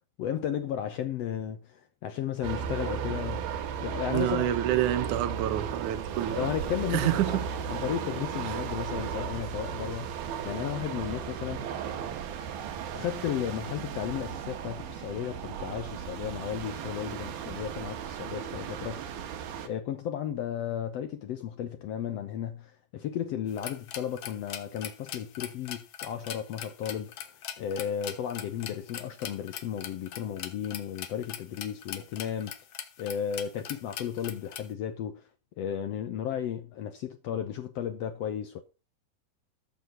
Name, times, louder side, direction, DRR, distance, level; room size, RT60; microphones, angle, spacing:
voice 1, 0.2-3.5 3.8-4.5 6.3-7.4 7.7-10.1 10.4-11.7 12.9-19.1 19.6-27.1 27.6-32.5 33.0-35.2 35.6-38.6, left 9 dB, 90° left, 1.4 m, -34 dB
sound 1, 2.4-19.7, right 7 dB, 90° right, 3.2 m, -35 dB
voice 2, 4.1-6.5 6.9-7.5 8.5-8.6, right 13 dB, 65° right, 2.2 m, -28 dB
sound 2, 23.5-34.7, left 10 dB, 70° left, 1.5 m, -42 dB
13.0 x 6.3 x 5.6 m
omnidirectional pair, 4.2 m